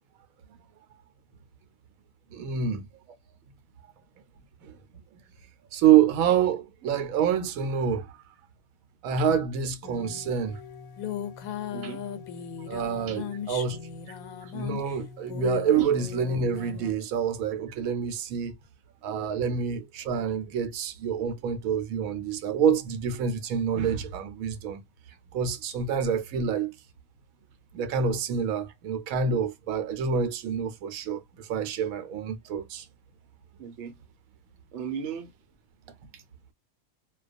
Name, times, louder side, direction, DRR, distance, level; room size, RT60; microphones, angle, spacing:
voice 1, 2.3-2.9 4.6-5.0 5.7-8.2 9.0-10.6 12.7-13.8 14.5-18.5 19.0-24.8 25.3-26.8 27.7-32.9, right 7 dB, 80° right, 1.0 m, -27 dB
sound 1, 9.8-16.9, left 8 dB, 85° left, 1.0 m, -38 dB
voice 2, 11.7-12.0 13.1-13.2 14.1-14.5 15.7-15.9 33.6-33.9 34.7-35.3 36.1-36.2, right 7 dB, 65° right, 0.9 m, -37 dB
2.3 x 2.2 x 2.4 m
omnidirectional pair, 1.4 m